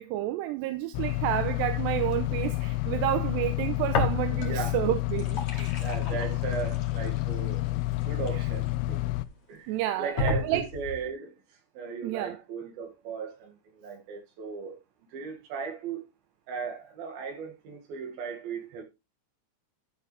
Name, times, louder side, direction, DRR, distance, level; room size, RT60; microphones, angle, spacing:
voice 1, 0.0-6.2 9.7-10.7 12.0-12.4, right 14 dB, 80° right, 2.7 m, -30 dB
sound 1, 0.9-9.3, left 18 dB, 85° left, 2.9 m, -29 dB
sound 2, 3.9-4.7 5.0-9.0 9.5-9.6 10.2-11.1, left 3 dB, 50° left, 2.6 m, -33 dB
voice 2, 5.8-7.7 8.0-9.1 9.5-9.7 10.0-11.3 11.8-14.8 15.1-16.0 16.5-18.8, right 6 dB, 60° right, 3.7 m, -36 dB
13.0 x 7.0 x 3.3 m
omnidirectional pair, 5.2 m